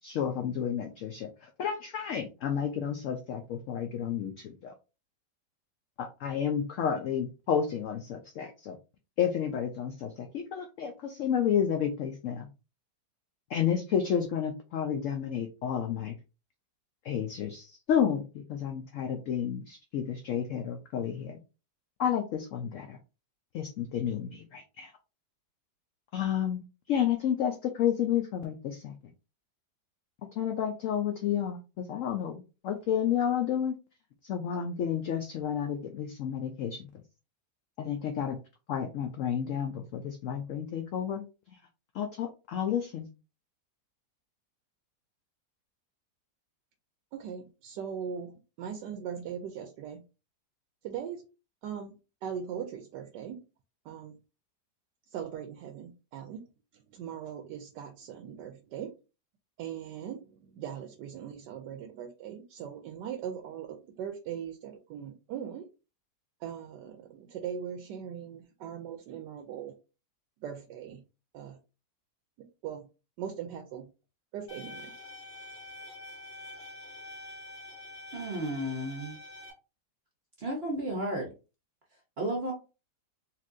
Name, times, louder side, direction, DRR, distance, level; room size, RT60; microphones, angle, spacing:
voice 1, 0.0-4.7 6.0-8.8 9.2-12.5 13.5-16.2 17.0-21.4 22.0-23.0 23.5-24.9 26.1-28.9 30.4-33.7 34.2-37.0 37.8-38.4 38.7-41.6 41.9-43.1, left 8 dB, 75° left, 5 dB, 0.7 m, -31 dB
voice 2, 47.1-50.0 50.8-51.2 51.6-52.0 52.2-53.4 53.8-54.2 55.1-58.9 59.6-65.7 66.4-69.7 70.4-71.0 71.3-71.6 72.4-72.9 73.2-73.9 74.3-74.9, right 8 dB, 85° right, 6 dB, 1.2 m, -40 dB
sound 1, 74.5-79.5, left 1 dB, 40° left, 1.5 m, -46 dB
voice 3, 78.1-79.2 80.4-81.3 82.2-82.5, right 1 dB, 55° right, 1 dB, 0.7 m, -33 dB
4.1 x 2.6 x 2.5 m, 0.31 s
omnidirectional pair, 1.8 m